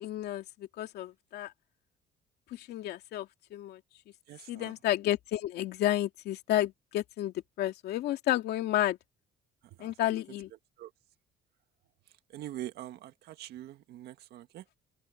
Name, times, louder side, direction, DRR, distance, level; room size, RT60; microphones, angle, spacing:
voice 1, 0.0-1.5 2.5-3.8 4.5-9.0 9.8-10.5, left 13 dB, 75° left, 2.6 m, -31 dB
voice 2, 4.3-4.7 9.8-9.9 10.8-10.9 12.3-14.6, right 13 dB, 75° right, 1.8 m, -43 dB
open air
cardioid pair, 110°, 17 cm